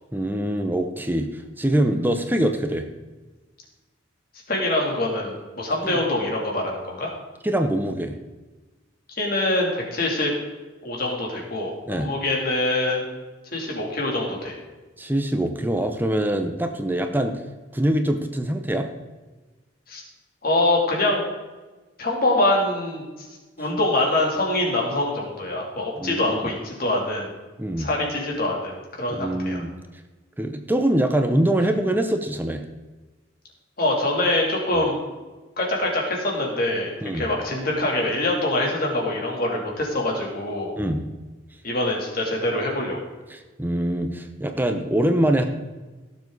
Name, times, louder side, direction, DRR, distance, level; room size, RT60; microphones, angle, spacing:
voice 1, 0.1-2.9 5.8-6.0 7.4-8.1 11.9-12.1 15.0-17.4 17.7-18.9 26.0-26.5 27.6-27.9 29.1-29.7 30.4-32.6 37.0-37.3 40.8-41.1 43.3-45.5, right 1 dB, 10° right, 6 dB, 0.8 m, -24 dB
voice 2, 4.5-7.1 9.2-10.3 10.8-13.0 13.5-14.5 19.9-20.0 20.4-21.2 22.0-23.3 23.6-27.3 27.8-29.6 33.8-35.0 35.6-40.7 41.6-43.0, left 1 dB, 50° left, -2 dB, 3.1 m, -24 dB
16.5 x 7.3 x 4.0 m, 1.2 s
head